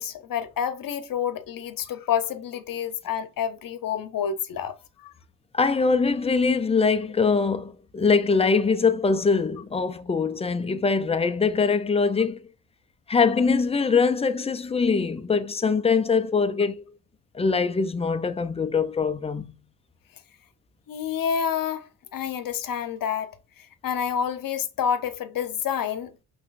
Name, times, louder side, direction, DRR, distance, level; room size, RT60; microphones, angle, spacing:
voice 1, 0.0-4.8 5.0-5.1 20.9-26.1, left 8 dB, 50° left, 0.9 m, -28 dB
voice 2, 5.5-12.5 13.1-16.8 17.3-19.5, left 4 dB, 15° left, 0.5 m, -23 dB
5.5 x 3.1 x 2.5 m
cardioid pair, 80°, 42 cm